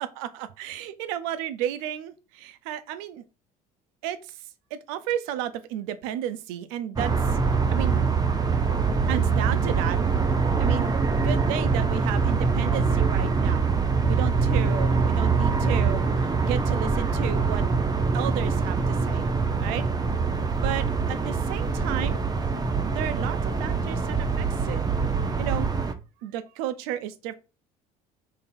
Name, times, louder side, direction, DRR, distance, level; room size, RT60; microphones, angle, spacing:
voice 1, 0.0-3.2 4.0-4.4 4.7-7.4 7.7-8.0 9.0-10.0 10.6-13.7 14.1-17.6 18.1-19.3 19.6-19.8 20.6-22.2 22.8-24.8 25.4-25.7 26.2-27.3, right 11 dB, 70° right, 0.6 m, -33 dB
sound 1, 7.0-25.9, right 4 dB, 20° right, 0.7 m, -24 dB
3.8 x 2.8 x 4.3 m
hypercardioid pair, 65°, 19 cm